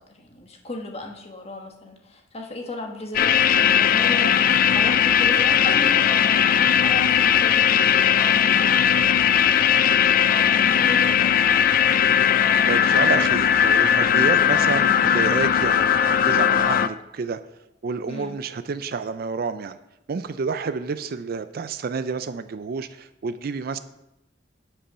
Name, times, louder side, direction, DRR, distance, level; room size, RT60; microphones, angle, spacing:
voice 1, 0.1-10.1 10.5-11.7 14.1-14.4 18.1-18.4, left 1 dB, 35° left, 2 dB, 1.3 m, -36 dB
sound 1, 3.1-16.9, left 9 dB, 50° left, 0.3 m, -18 dB
voice 2, 12.7-17.4 17.8-19.8 20.1-23.8, right 5 dB, 55° right, 12 dB, 0.4 m, -29 dB
8.5 x 5.4 x 5.6 m, 0.90 s
head